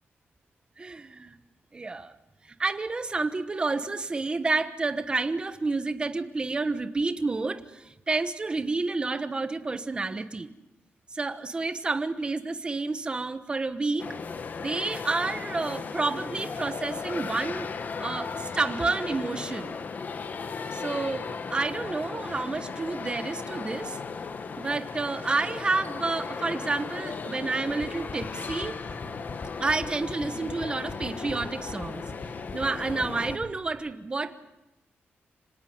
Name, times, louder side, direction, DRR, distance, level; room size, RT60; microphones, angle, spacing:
voice 1, 0.8-1.4 1.7-2.1 2.4-10.5 11.1-14.1 14.6-17.7 18.0-19.7 20.7-24.0 24.6-28.8 29.6-32.0 32.5-34.4, right 3 dB, 25° right, 11 dB, 1.2 m, -30 dB
sound 1, 14.0-33.4, left 5 dB, 45° left, 1.5 m, -36 dB
sound 2, 27.7-33.7, left 3 dB, 25° left, 2.1 m, -40 dB
26.0 x 18.0 x 9.4 m, 0.95 s
wide cardioid pair, 165°, 4 cm